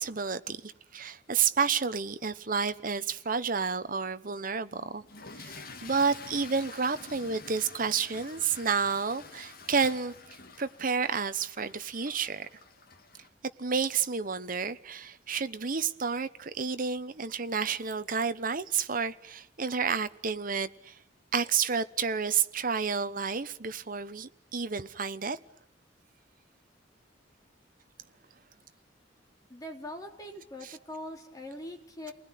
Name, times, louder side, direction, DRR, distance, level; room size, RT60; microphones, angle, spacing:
voice 1, 0.0-5.0 5.4-10.1 10.6-12.5 13.6-21.0 21.3-25.4 30.6-30.7, right 5 dB, 50° right, 1.1 m, -30 dB
Toilet flush / Fill (with liquid), 5.0-13.3, left 4 dB, 55° left, 2.2 m, -48 dB
voice 2, 29.5-32.1, left 1 dB, 20° left, 3.5 m, -42 dB
29.5 x 20.0 x 9.4 m
head